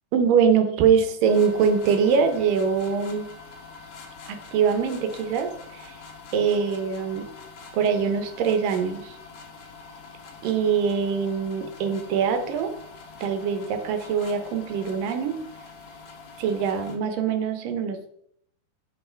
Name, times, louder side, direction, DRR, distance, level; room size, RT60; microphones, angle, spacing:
voice 1, 0.1-3.3 4.3-6.0 6.3-7.3 7.7-9.1 10.4-12.7 13.2-15.4 16.4-18.0, right 6 dB, 85° right, 7 dB, 2.7 m, -23 dB
sound 1, 1.2-17.0, left 4 dB, 60° left, 1.5 m, -45 dB
7.7 x 5.8 x 4.5 m, 0.70 s
omnidirectional pair, 3.8 m